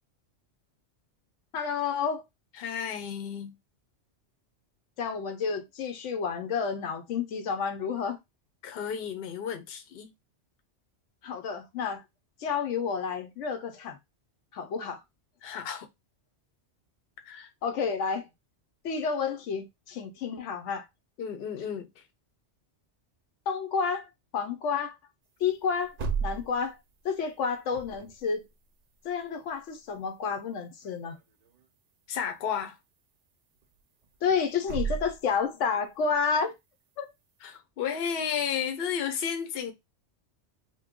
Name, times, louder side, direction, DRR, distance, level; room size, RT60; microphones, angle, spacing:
voice 1, 1.5-2.2 5.0-8.2 11.2-12.0 12.4-14.0 14.5-15.0 17.6-18.3 18.8-20.9 23.5-25.0 25.4-26.8 27.0-28.5 29.0-31.1 34.2-36.5 37.0-37.1, left 6 dB, 85° left, 1.0 m, -30 dB
voice 2, 2.6-3.5 8.6-10.1 15.4-15.9 17.2-17.5 21.2-21.9 32.1-32.8 37.4-39.7, left 8 dB, 60° left, 0.8 m, -33 dB
sound 1, 25.5-26.7 27.7-28.2 29.4-29.5 29.8-29.9 30.8-31.2 31.5-31.6 33.6-33.7 34.1-34.3 34.7-35.4, right 6 dB, 55° right, 0.5 m, -33 dB
2.9 x 2.2 x 3.5 m
omnidirectional pair, 1.2 m